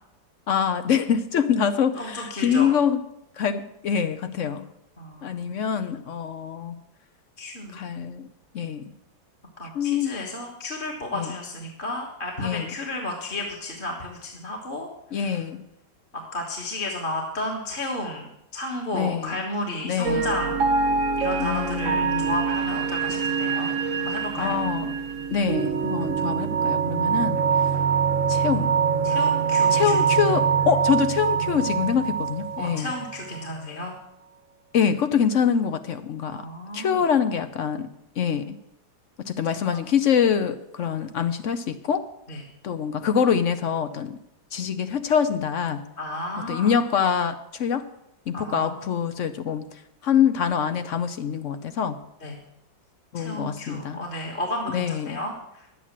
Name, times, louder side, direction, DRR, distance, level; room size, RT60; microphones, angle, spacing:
voice 1, 0.5-3.0 3.4-4.7 5.2-6.8 7.7-8.3 8.5-8.9 9.7-10.1 11.1-11.3 12.4-12.7 15.1-15.6 18.9-19.4 19.8-20.4 21.4-22.4 24.4-24.9 25.3-27.4 28.3-28.8 29.7-32.9 34.7-36.4 36.7-37.9 38.2-38.6 39.3-42.0 42.6-44.2 44.5-45.8 46.5-47.9 48.3-52.0 53.1-54.0 54.7-55.2, left 7 dB, 65° left, 11 dB, 0.7 m, -25 dB
voice 2, 2.0-2.7 5.0-5.5 7.4-7.8 9.6-15.4 16.1-20.6 21.2-24.6 27.7-27.8 29.0-30.0 30.3-30.4 32.6-33.9 36.3-37.0 39.7-39.8 42.3-42.4 46.0-46.8 48.3-48.9 52.2-52.4 53.1-55.7, left 1 dB, 30° left, -1 dB, 1.6 m, -33 dB
sound 1, 20.0-33.4, right 6 dB, 55° right, 1.0 m, -24 dB
11.0 x 8.4 x 7.4 m, 0.81 s
omnidirectional pair, 2.0 m